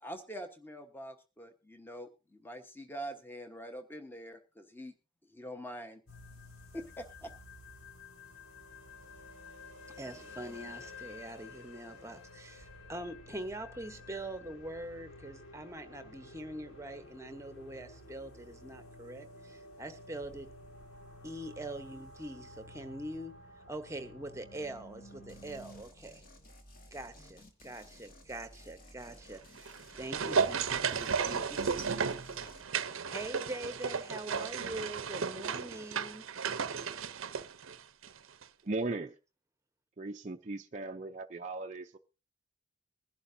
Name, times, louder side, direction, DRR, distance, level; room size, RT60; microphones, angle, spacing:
voice 1, 0.0-4.9 5.3-6.0 6.7-7.3, equal, 10° left, 1.2 m, -44 dB
sound 1, 6.1-25.8, left 2 dB, 75° left, 2.2 m, -52 dB
voice 2, 9.9-20.5 21.2-23.4 23.7-26.2 26.9-29.7 30.0-36.3, right 1 dB, 15° right, 1.0 m, -44 dB
sound 2, 25.3-32.7, left 1 dB, 40° left, 1.8 m, -56 dB
sound 3, 29.5-38.2 38.4-38.5, right 6 dB, 70° right, 0.7 m, -34 dB
voice 3, 38.6-39.2 40.0-42.0, right 2 dB, 35° right, 0.6 m, -37 dB
21.5 x 11.5 x 2.7 m
head